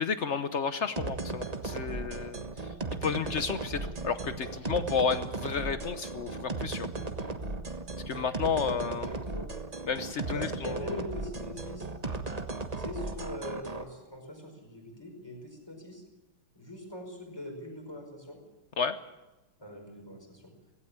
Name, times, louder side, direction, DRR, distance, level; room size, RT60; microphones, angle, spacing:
voice 1, 0.0-2.4 3.0-6.9 8.1-9.1 9.9-10.8 18.8-19.0, left 6 dB, 65° left, 11 dB, 0.7 m, -31 dB
sound 1, 1.0-13.8, right 3 dB, 25° right, 1.0 m, -36 dB
voice 2, 9.0-9.5 10.3-11.9 12.7-16.0 16.6-18.4 19.6-20.5, left 1 dB, 10° left, 2 dB, 5.2 m, -42 dB
17.0 x 16.5 x 9.9 m, 1.0 s
omnidirectional pair, 2.4 m